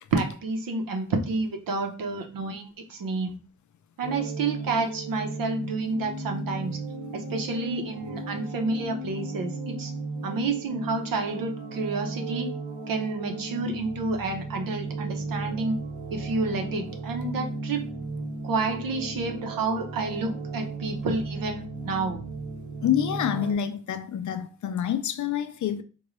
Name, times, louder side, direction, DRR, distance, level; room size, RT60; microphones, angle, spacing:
voice 1, 0.1-3.4 4.0-6.8 7.1-9.9 10.2-12.5 12.9-15.7 16.1-17.9 18.4-22.2, right 3 dB, 85° right, 0.7 m, -29 dB
sound 1, 4.0-23.5, right 2 dB, 25° right, 1.0 m, -35 dB
voice 2, 22.8-25.8, left 9 dB, 65° left, 0.4 m, -27 dB
3.7 x 2.3 x 3.0 m
cardioid pair, 85°, 33 cm